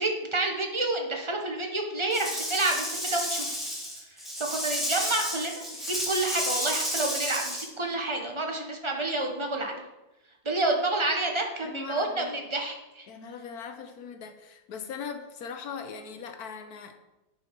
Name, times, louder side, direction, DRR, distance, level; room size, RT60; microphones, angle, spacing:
voice 1, 0.0-3.6 4.4-9.8 10.4-13.1, right 2 dB, 20° right, 2 dB, 0.8 m, -29 dB
Rattle / Rattle (instrument), 2.1-7.7, equal, ahead, 2.4 m, -32 dB
voice 2, 11.6-12.3 13.1-17.0, left 6 dB, 60° left, 7 dB, 1.2 m, -40 dB
8.6 x 5.5 x 5.9 m, 0.99 s
omnidirectional pair, 2.1 m